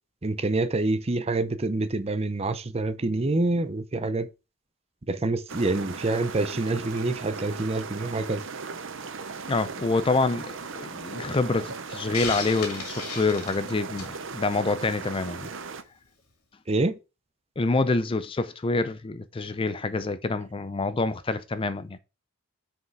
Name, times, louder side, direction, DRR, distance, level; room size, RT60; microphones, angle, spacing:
voice 1, 0.2-4.3 5.1-8.4 16.7-17.0, right 2 dB, 30° right, 0.6 m, -26 dB
sound 1, 5.5-15.8, right 5 dB, 60° right, 0.8 m, -38 dB
voice 2, 9.5-15.5 17.6-22.0, left 3 dB, 25° left, 0.4 m, -27 dB
Hiss, 12.1-14.2, left 5 dB, 85° left, 2.4 m, -34 dB
6.4 x 4.8 x 4.7 m
head